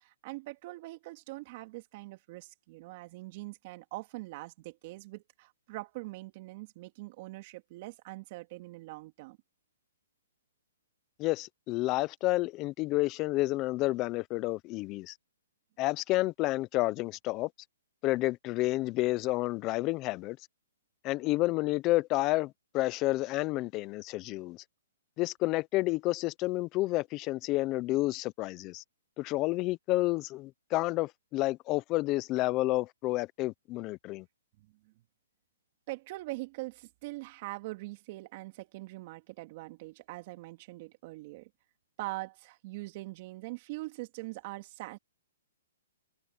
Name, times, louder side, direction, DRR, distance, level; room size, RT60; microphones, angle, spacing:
voice 1, 0.0-9.4 34.6-34.9 35.9-41.5 42.0-45.0, right 21 dB, 40° right, 2.9 m, -43 dB
voice 2, 11.2-15.2 15.8-17.5 18.0-20.4 21.0-24.6 25.2-28.8 29.2-34.2, left 19 dB, 25° left, 0.7 m, -30 dB
hypercardioid pair, 150°, 0 cm